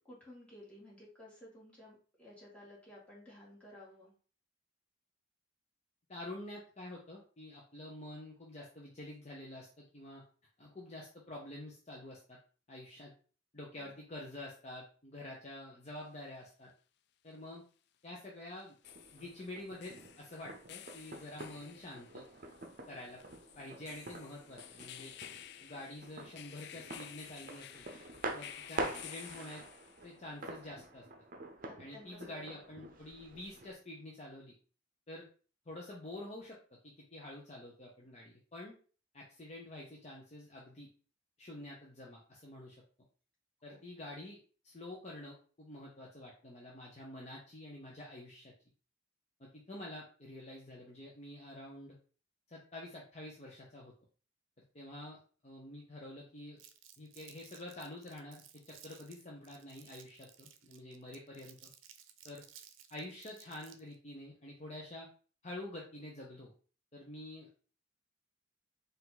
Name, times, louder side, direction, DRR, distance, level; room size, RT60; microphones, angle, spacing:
voice 1, 0.0-4.1 13.7-13.9 31.7-32.6 43.7-43.8, left 1 dB, 5° left, -7 dB, 1.9 m, -54 dB
voice 2, 6.1-10.2 10.6-12.4 12.7-13.1 13.5-16.7 17.2-17.6 18.0-18.8 19.1-22.3 22.9-23.2 23.6-25.1 25.6-27.8 28.3-29.6 30.0-31.0 31.8-34.5 35.1-35.3 35.7-36.6 36.8-38.7 39.1-40.9 41.4-42.8 43.6-44.4 44.6-48.5 49.4-52.0 52.5-53.9 54.7-56.6 57.0-61.7 62.2-62.4 62.9-65.1 65.4-66.5 66.9-67.5, left 1 dB, 35° left, -3 dB, 0.8 m, -48 dB
sound 1, 16.0-16.1 18.6-30.2, left 11 dB, 60° left, 0.3 m, -53 dB
sound 2, 18.8-33.7, right 2 dB, 45° right, 0.7 m, -46 dB
Crumpling crinkling, 56.6-64.0, right 9 dB, 85° right, 0.5 m, -58 dB
4.6 x 2.6 x 3.9 m, 0.40 s
head